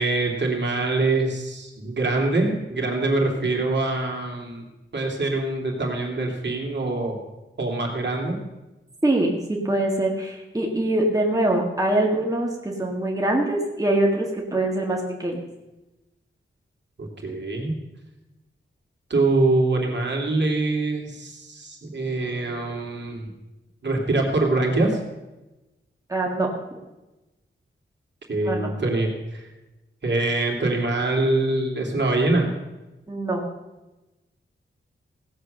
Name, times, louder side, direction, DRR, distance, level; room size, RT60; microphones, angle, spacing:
voice 1, 0.0-4.7 4.9-7.2 7.6-8.4 17.0-17.7 19.1-23.3 23.8-25.0 28.3-29.4 30.0-32.5, right 2 dB, 60° right, 0 dB, 2.9 m, -24 dB
voice 2, 9.0-15.4 26.1-26.8 28.4-28.7 33.1-33.4, right 1 dB, 15° right, -1 dB, 1.9 m, -24 dB
17.0 x 7.9 x 6.6 m, 1.0 s
wide cardioid pair, 110°, 21 cm